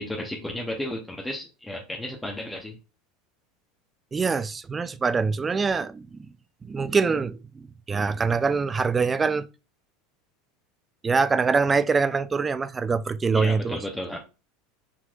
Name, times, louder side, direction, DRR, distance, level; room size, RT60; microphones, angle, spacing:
voice 1, 0.0-2.8 13.3-14.2, left 1 dB, 10° left, 0.7 m, -33 dB
voice 2, 4.1-6.3 6.6-9.5 11.0-13.8, right 4 dB, 20° right, 0.4 m, -24 dB
6.0 x 2.9 x 2.4 m
hypercardioid pair, 95°, 0 cm